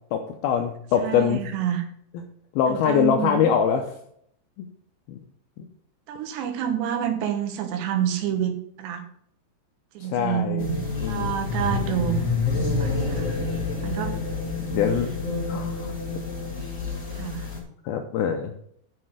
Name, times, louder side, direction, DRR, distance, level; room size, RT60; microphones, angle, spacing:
voice 1, 0.1-1.4 2.6-3.9 5.1-5.2 5.6-5.7 10.0-10.7 11.0-11.4 14.7-15.1 15.5-15.9 17.8-18.5, left 7 dB, 90° left, 4 dB, 2.1 m, -23 dB
voice 2, 1.0-1.8 2.7-3.5 6.1-9.0 9.9-13.3 13.8-14.2 17.2-17.5, right 9 dB, 75° right, 6 dB, 3.3 m, -28 dB
sound 1, 10.6-17.6, left 4 dB, 30° left, 1.6 m, -28 dB
7.5 x 6.6 x 6.3 m, 0.69 s
omnidirectional pair, 5.2 m